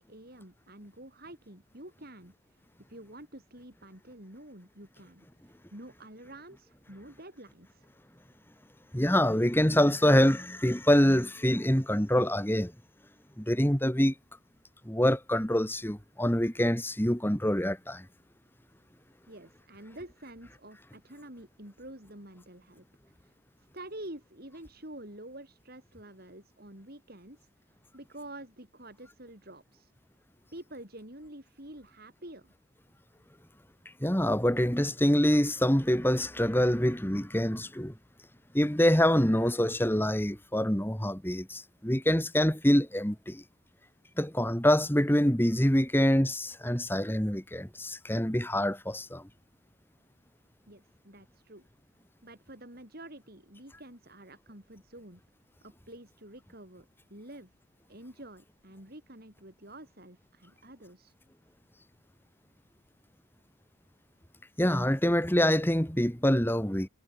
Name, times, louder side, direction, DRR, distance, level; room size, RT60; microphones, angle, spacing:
voice 1, 0.0-2.6 2.9-7.9 19.3-22.8 23.2-23.3 23.7-27.5 27.9-29.9 30.5-32.5 50.7-51.7 52.2-55.2 55.6-57.5 57.9-61.1, right 1 dB, 45° right, 5.5 m, -48 dB
voice 2, 8.9-12.7 13.4-14.1 14.9-18.1 34.0-37.9 38.5-43.4 44.2-49.3 64.6-66.9, equal, 10° left, 2.3 m, -25 dB
head